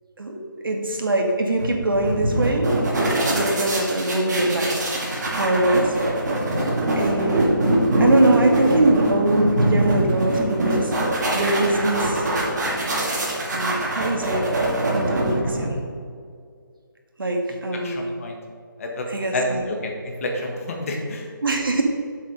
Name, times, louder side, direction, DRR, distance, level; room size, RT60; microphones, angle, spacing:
voice 1, 0.2-2.7 3.2-5.0 5.4-6.0 7.0-7.5 8.0-10.9 11.3-12.3 13.5-14.5 14.9-15.8 17.2-18.1 19.1-19.6 21.4-21.8, right 2 dB, 80° right, 2 dB, 1.8 m, -22 dB
sound 1, 1.6-15.9, right 1 dB, 55° right, 2.5 m, -23 dB
voice 2, 17.8-18.4 18.8-19.1 19.3-19.6 20.0-21.3, left 1 dB, 40° left, 1 dB, 1.6 m, -28 dB
7.5 x 7.4 x 5.2 m, 2.1 s
figure-of-eight pair, 160°, 11 cm